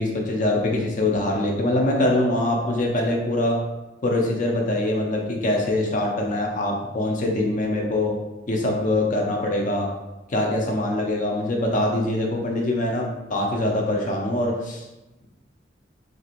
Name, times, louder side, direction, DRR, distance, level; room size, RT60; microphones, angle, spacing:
voice 1, 0.0-3.6 4.0-8.1 8.5-9.9 10.3-14.9, left 1 dB, 45° left, 0 dB, 0.5 m, -23 dB
2.9 x 2.5 x 2.9 m, 1.0 s
head